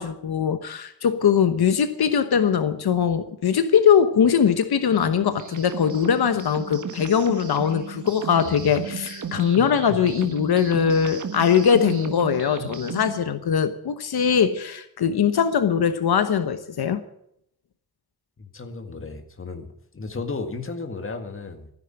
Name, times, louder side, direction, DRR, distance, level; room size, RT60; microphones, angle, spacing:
voice 1, 0.0-17.0, left 7 dB, 80° left, 10 dB, 1.1 m, -21 dB
sound 1, 4.9-13.2, right 6 dB, 50° right, 1.5 m, -35 dB
voice 2, 18.4-21.7, left 3 dB, 35° left, 6 dB, 1.9 m, -34 dB
15.0 x 10.0 x 8.9 m, 0.74 s
wide cardioid pair, 155°, 37 cm